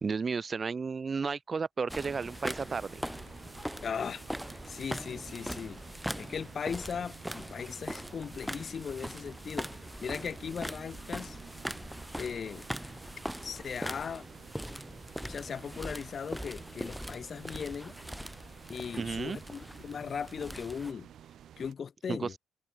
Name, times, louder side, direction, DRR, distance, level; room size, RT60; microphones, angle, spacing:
voice 1, 0.0-3.0 19.0-19.4 22.1-22.4, right 5 dB, 35° right, 0.4 m, -33 dB
sound 1, 1.9-20.9, equal, ahead, 1.4 m, -41 dB
sound 2, 2.0-21.7, right 10 dB, 65° right, 0.9 m, -53 dB
voice 2, 3.8-4.2 4.5-5.8 6.2-9.7 10.0-11.4 12.2-12.7 13.4-14.3 15.2-17.9 18.7-21.1 21.6-22.3, left 6 dB, 45° left, 0.4 m, -38 dB
cardioid pair, 90°, 0 cm